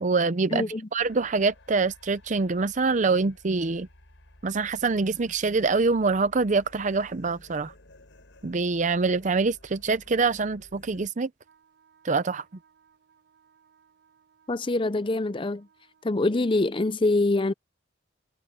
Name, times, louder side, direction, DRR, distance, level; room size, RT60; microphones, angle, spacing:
voice 1, 0.0-3.9 4.4-7.7 8.4-11.3 12.0-12.4, right 4 dB, 40° right, 0.6 m, -25 dB
voice 2, 0.5-0.9 14.5-15.7 16.0-17.5, left 2 dB, 25° left, 0.6 m, -25 dB
sound 1, 1.0-11.1, left 1 dB, 85° left, 4.8 m, -55 dB
Wind instrument woodwind instrument, 11.4-16.6, right 7 dB, 60° right, 4.9 m, -63 dB
head